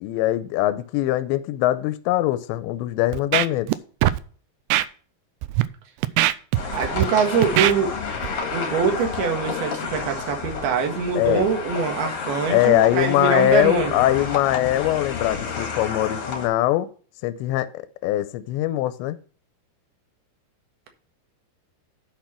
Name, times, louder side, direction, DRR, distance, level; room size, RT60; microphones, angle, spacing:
voice 1, 0.0-3.7 11.2-11.5 12.5-16.9 17.2-19.2, left 15 dB, 85° left, 2.8 m, -22 dB
Scratching (performance technique), 3.1-3.8 4.0-4.2 4.7-4.9 5.4-5.6 6.0-7.1 7.4-7.7 8.2-8.4, right 15 dB, 85° right, 2.5 m, -20 dB
sound 1, 6.5-16.5, left 5 dB, 50° left, 1.7 m, -30 dB
voice 2, 6.7-7.9 8.5-14.0, right 6 dB, 65° right, 3.3 m, -23 dB
10.5 x 5.8 x 4.3 m
omnidirectional pair, 5.2 m